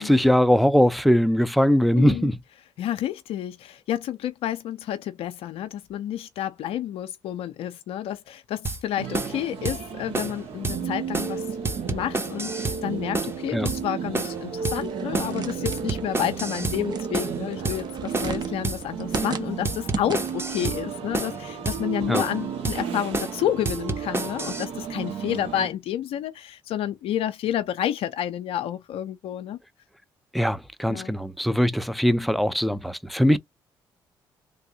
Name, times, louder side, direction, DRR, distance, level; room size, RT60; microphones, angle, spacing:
voice 1, 0.0-2.4 13.5-13.7 22.1-22.2 30.3-33.4, equal, ahead, 0.5 m, -21 dB
voice 2, 1.9-2.3 2.8-11.4 11.9-29.6 30.8-31.1, left 11 dB, 70° left, 0.4 m, -30 dB
sound 1, 8.7-8.8 9.1-9.4 9.7-9.8 10.1-10.4 10.6-10.8 11.1-11.4 11.7-12.8 13.1-13.4 13.7-13.8 14.1-14.4 14.7-14.8 15.1-15.4 15.7-16.8 17.1-17.4 17.7-17.8 18.1-18.4 18.6-18.8 19.1-19.4 19.7-20.8 21.1-21.4 21.7-21.8 22.1-22.4 22.7-22.8 23.1-23.4 23.7-24.7, right 2 dB, 25° right, 1.1 m, -29 dB
sound 2, 9.0-25.7, right 7 dB, 70° right, 1.5 m, -33 dB
sound 3, 14.7-20.6, right 4 dB, 45° right, 1.0 m, -37 dB
3.3 x 2.6 x 2.7 m
hypercardioid pair, 50°, 10 cm